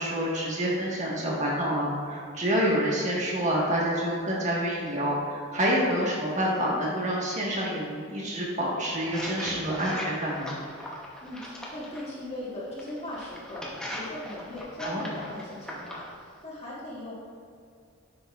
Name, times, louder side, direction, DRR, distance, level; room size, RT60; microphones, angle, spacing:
voice 1, 0.0-10.5 14.8-15.1, equal, 35° right, -4 dB, 1.5 m, -27 dB
sound 1, 9.0-12.1 12.8-16.1, left 1 dB, 5° left, 0.9 m, -39 dB
voice 2, 11.2-17.1, left 1 dB, 30° left, -7 dB, 1.5 m, -39 dB
10.5 x 5.8 x 2.5 m, 2.4 s
head